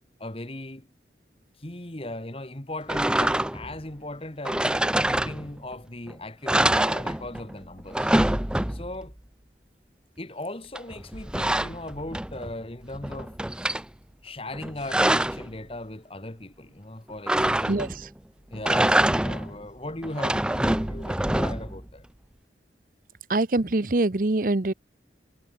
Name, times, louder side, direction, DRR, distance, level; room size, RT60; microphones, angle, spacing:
voice 1, 0.2-0.9 1.6-4.8 5.1-8.1 8.7-9.1 10.2-13.4 14.2-17.8 18.5-22.1, left 1 dB, 30° left, 1.8 m, -38 dB
sound 1, 2.9-3.8 4.4-5.7 6.1-6.2 6.5-7.5 7.8-9.0 10.7-12.5 12.9-13.8 14.5-15.5 17.3-18.1 18.5-19.6 20.0-21.8, right 1 dB, 5° right, 0.4 m, -25 dB
voice 2, 17.7-18.1 23.3-24.7, right 2 dB, 50° right, 0.9 m, -24 dB
head